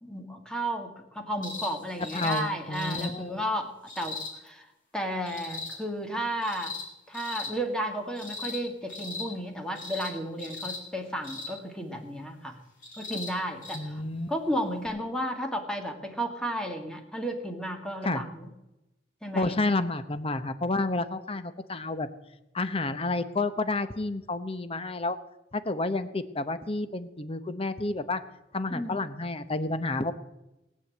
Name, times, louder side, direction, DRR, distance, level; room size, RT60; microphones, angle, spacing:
voice 1, 0.0-3.7 4.0-4.2 4.4-4.7 4.9-6.8 7.1-12.6 13.0-14.0 14.3-18.5 19.2-19.6 28.7-29.0, equal, 5° left, 3 dB, 2.0 m, -33 dB
sound 1, 1.4-1.7 2.0-2.4 2.7-3.1 3.9-4.3 5.3-5.7 6.4-6.8 7.1-7.5 8.2-8.6 8.9-9.3 9.7-10.1 10.4-10.8 11.2-11.5 12.8-13.3 13.6-13.8 14.9-15.0, left 4 dB, 50° left, 5.0 m, -37 dB
voice 2, 2.1-3.3 13.7-14.3 18.0-18.2 19.3-22.1 22.5-25.2 25.5-28.2 28.5-30.1, left 2 dB, 30° left, 11 dB, 0.9 m, -30 dB
19.0 x 8.6 x 8.4 m, 0.95 s
head